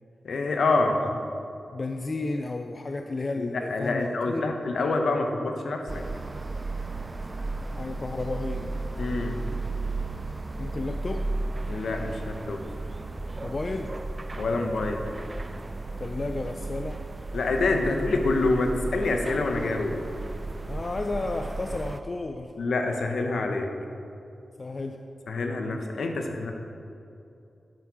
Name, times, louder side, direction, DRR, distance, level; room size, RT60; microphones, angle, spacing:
voice 1, 0.2-1.0 3.4-6.0 9.0-9.4 11.7-12.6 14.4-15.0 17.3-20.0 22.6-23.7 25.3-26.5, left 3 dB, 85° left, 4 dB, 1.0 m, -26 dB
voice 2, 1.7-4.5 7.8-8.8 10.6-11.3 13.4-13.9 16.0-17.0 20.7-22.5 24.6-25.0, left 2 dB, 45° left, 5 dB, 0.5 m, -32 dB
sound 1, 5.9-22.0, right 2 dB, 30° right, 0.5 m, -34 dB
10.5 x 8.8 x 4.9 m, 2.7 s
cardioid pair, 75°, 0 cm